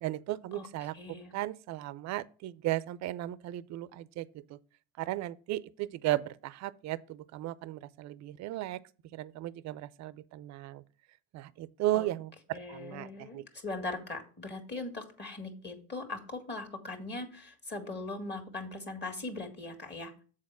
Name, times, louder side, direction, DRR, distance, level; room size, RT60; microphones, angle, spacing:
voice 1, 0.0-0.9 1.3-4.6 5.0-8.8 9.1-10.8 11.3-13.4, right 15 dB, 50° right, 0.5 m, -35 dB
voice 2, 0.5-1.3 11.9-12.1 12.5-20.1, left 2 dB, 30° left, 1.8 m, -40 dB
7.3 x 4.2 x 5.9 m
supercardioid pair, 80°, 36 cm